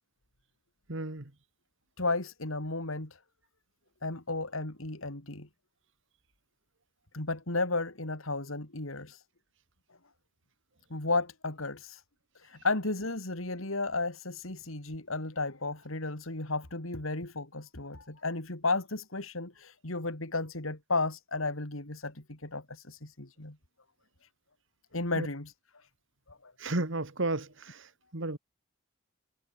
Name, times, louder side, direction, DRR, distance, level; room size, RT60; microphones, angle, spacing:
voice 1, 0.9-1.2 25.2-25.3 26.6-27.5 28.1-28.4, right 2 dB, 65° right, 2.0 m, -32 dB
voice 2, 2.0-3.2 4.0-5.5 7.1-9.2 10.9-12.0 12.4-23.6 24.9-25.5 26.3-26.5, left 3 dB, 75° left, 3.4 m, -33 dB
head